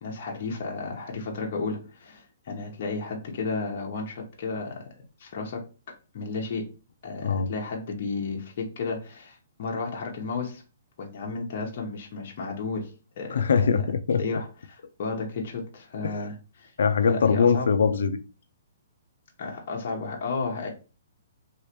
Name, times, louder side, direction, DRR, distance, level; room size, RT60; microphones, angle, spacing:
voice 1, 0.0-4.9 5.2-6.7 7.0-10.6 11.0-13.8 14.2-16.7 17.1-17.7 19.4-20.7, left 4 dB, 45° left, 0.9 m, -33 dB
voice 2, 13.3-14.2 16.0-16.3 16.8-18.2, left 6 dB, 75° left, 0.3 m, -22 dB
3.0 x 2.9 x 2.9 m
hypercardioid pair, 155°, 0 cm